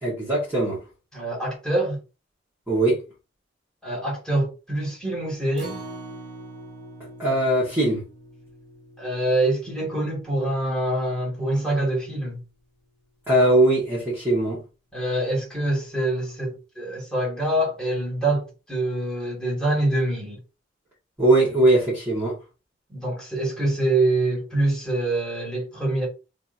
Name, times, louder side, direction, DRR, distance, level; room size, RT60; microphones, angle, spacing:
voice 1, 0.0-0.8 2.7-3.0 7.2-8.0 13.3-14.6 21.2-22.4, right 1 dB, 10° right, 1.8 m, -20 dB
voice 2, 1.1-2.0 3.8-5.8 9.0-12.4 14.9-20.4 22.9-26.1, right 1 dB, 5° left, 2.2 m, -25 dB
Acoustic guitar, 5.6-11.9 12.3-12.4 12.8-12.9, right 1 dB, 70° right, 1.9 m, -44 dB
3.9 x 3.3 x 2.8 m
head